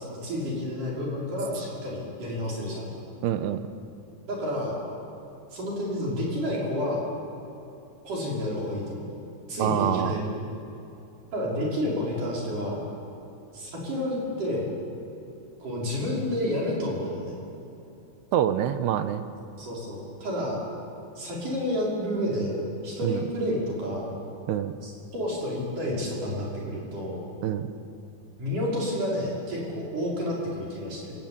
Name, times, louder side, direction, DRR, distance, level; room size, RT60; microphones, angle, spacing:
voice 1, 0.0-2.9 4.3-4.8 5.5-7.0 8.0-9.1 9.5-10.4 11.3-12.8 13.5-14.8 15.6-17.4 19.6-20.6 21.2-24.1 24.8-27.2 28.4-31.1, left 1 dB, 45° right, -4 dB, 6.9 m, -30 dB
voice 2, 3.2-3.6 9.6-10.2 18.3-19.2 23.0-23.2 24.5-24.7 27.4-27.7, right 10 dB, 80° right, 10 dB, 2.8 m, -26 dB
27.0 x 20.5 x 8.9 m, 2.9 s
omnidirectional pair, 5.1 m